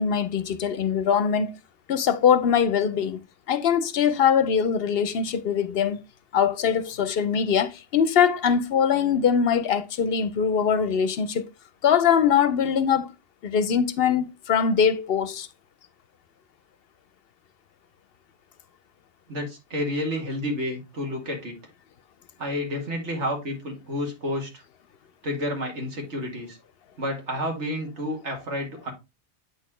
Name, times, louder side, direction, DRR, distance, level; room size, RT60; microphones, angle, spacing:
voice 1, 0.0-1.6 1.9-3.2 3.5-6.0 6.3-11.5 11.8-13.1 13.4-15.5, left 7 dB, 65° left, 0.8 m, -22 dB
voice 2, 19.3-21.6 22.4-24.5 25.2-26.6 27.0-28.9, left 1 dB, 85° right, 2.3 m, -30 dB
8.5 x 4.1 x 3.1 m
omnidirectional pair, 1.1 m